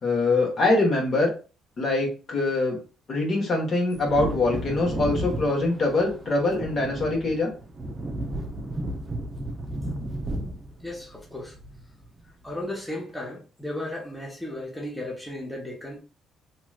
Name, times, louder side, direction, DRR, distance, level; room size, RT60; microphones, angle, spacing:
voice 1, 0.0-1.3 1.8-2.8 3.1-7.5, left 2 dB, 50° left, 1.5 m, -23 dB
Wind / Thunder, 3.9-12.2 12.5-12.6, right 1 dB, 35° right, 0.7 m, -33 dB
voice 2, 10.8-11.6 12.4-16.0, left 1 dB, 5° left, 1.0 m, -35 dB
3.0 x 2.9 x 2.4 m
supercardioid pair, 70°, 0 cm